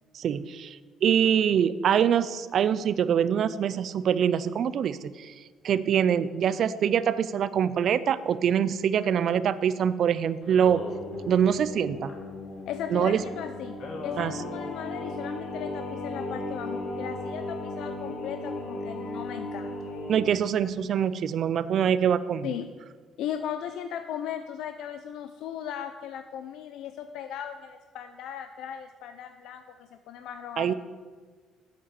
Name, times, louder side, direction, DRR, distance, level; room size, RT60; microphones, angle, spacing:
voice 1, 0.1-5.3 5.6-10.8 11.3-12.1 12.9-13.2 14.2-14.4 20.1-22.5 30.6-30.7, right 8 dB, 50° right, 15 dB, 0.4 m, -24 dB
Singing, 10.4-20.2, left 2 dB, 45° left, 1.9 m, -36 dB
voice 2, 12.7-13.8 14.0-19.9 22.4-22.7 23.2-30.7, left 9 dB, 70° left, 8 dB, 0.5 m, -37 dB
8.9 x 7.4 x 8.2 m, 1.5 s
cardioid pair, 155°, 0 cm